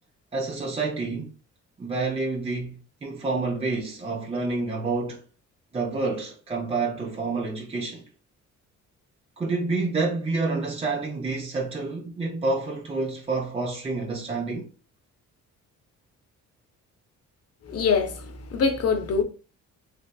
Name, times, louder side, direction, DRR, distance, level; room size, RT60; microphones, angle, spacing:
voice 1, 0.3-1.3 1.8-5.2 5.7-8.0 9.4-14.7, right 3 dB, 20° right, 0.5 m, -28 dB
voice 2, 17.6-19.2, left 5 dB, 55° left, 0.7 m, -24 dB
3.3 x 2.6 x 2.3 m
cardioid pair, 90°, 30 cm